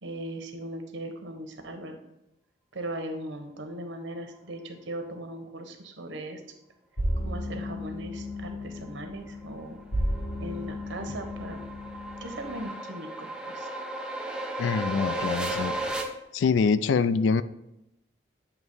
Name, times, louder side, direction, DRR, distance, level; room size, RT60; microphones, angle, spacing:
voice 1, 0.0-2.0 2.7-6.4 7.2-9.8 10.4-11.6 12.2-13.7, right 1 dB, 85° right, 5 dB, 1.0 m, -38 dB
sound 1, 7.0-12.6, equal, 50° left, 1.7 m, -34 dB
sound 2, 9.4-16.0, right 1 dB, 5° right, 0.6 m, -35 dB
voice 2, 14.6-15.7 16.3-17.4, left 5 dB, 85° left, 15 dB, 0.3 m, -24 dB
8.1 x 2.9 x 5.4 m, 0.86 s
head